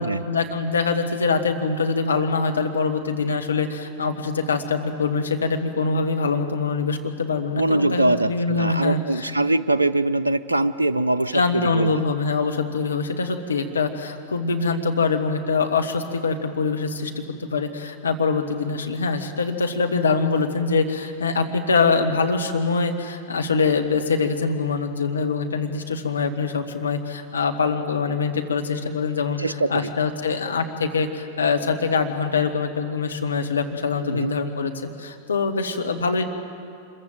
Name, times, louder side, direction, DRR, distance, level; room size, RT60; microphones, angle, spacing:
voice 1, 0.0-9.3 11.3-29.4 29.7-36.2, left 4 dB, 70° left, 5 dB, 1.8 m, -24 dB
voice 2, 7.5-12.0 29.4-29.9 34.1-34.3, right 2 dB, 80° right, 10 dB, 0.6 m, -22 dB
26.0 x 22.5 x 7.9 m, 2.4 s
figure-of-eight pair, 90°, 0 cm